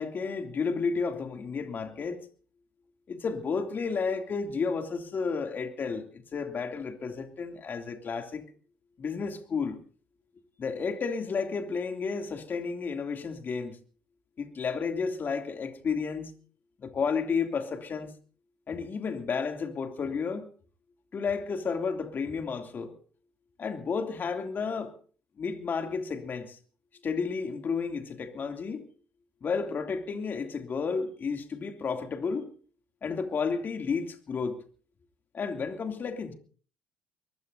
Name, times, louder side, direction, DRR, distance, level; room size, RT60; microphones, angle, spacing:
voice 1, 0.0-2.2 3.1-8.5 9.0-9.8 10.6-13.8 14.4-16.3 16.8-18.1 18.7-20.5 21.1-22.9 23.6-24.9 25.4-26.6 27.0-28.9 29.4-32.5 33.0-34.6 35.3-36.3, left 5 dB, 45° left, 2.8 m, -32 dB
22.5 x 21.0 x 2.8 m
hypercardioid pair, 60°, 5 cm